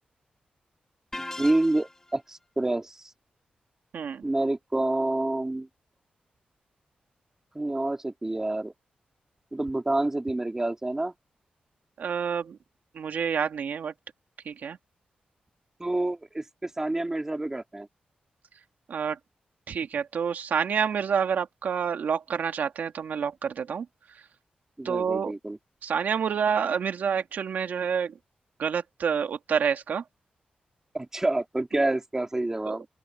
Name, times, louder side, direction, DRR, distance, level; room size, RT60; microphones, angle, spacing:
sound 1, 1.1-2.2, left 2 dB, 15° left, 1.2 m, -38 dB
voice 1, 1.1-3.1 4.2-5.7 7.5-8.7 9.5-11.1 15.8-17.9 24.8-25.6 30.9-32.9, right 2 dB, 20° right, 2.6 m, -28 dB
voice 2, 3.9-4.2 12.0-12.6 12.9-13.9 14.5-14.8 18.9-19.2 19.7-23.9 24.8-25.3 25.8-28.1 28.6-30.0 32.7-32.8, right 7 dB, 80° right, 1.9 m, -28 dB
open air
wide cardioid pair, 110°, 3 cm